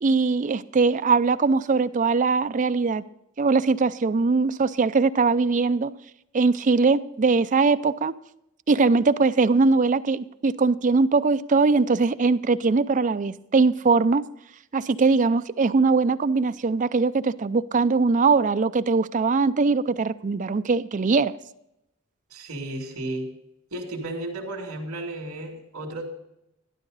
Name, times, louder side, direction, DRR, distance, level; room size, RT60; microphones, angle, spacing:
voice 1, 0.0-3.0 3.4-5.9 6.3-8.1 8.7-14.2 14.7-21.4, right 4 dB, 35° right, 0.4 m, -21 dB
voice 2, 22.3-23.3 23.7-26.0, right 1 dB, 75° right, 2.5 m, -33 dB
12.5 x 11.5 x 4.0 m
head